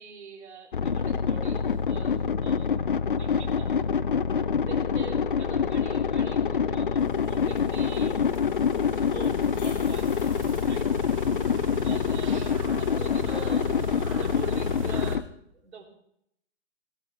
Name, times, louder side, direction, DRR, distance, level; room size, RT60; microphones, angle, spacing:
voice 1, 0.0-2.7 3.1-3.8 4.4-8.7 8.9-10.2 10.6-10.9 11.7-15.9, right 4 dB, 65° right, 1 dB, 3.7 m, -44 dB
sound 1, 0.7-15.2, left 6 dB, 45° left, 0.5 m, -26 dB
sound 2, 7.0-15.2, right 4 dB, 25° right, 1.7 m, -43 dB
sound 3, 9.0-11.5, left 3 dB, 15° left, 2.8 m, -50 dB
19.5 x 12.5 x 3.6 m, 0.74 s
hypercardioid pair, 175°, 36 cm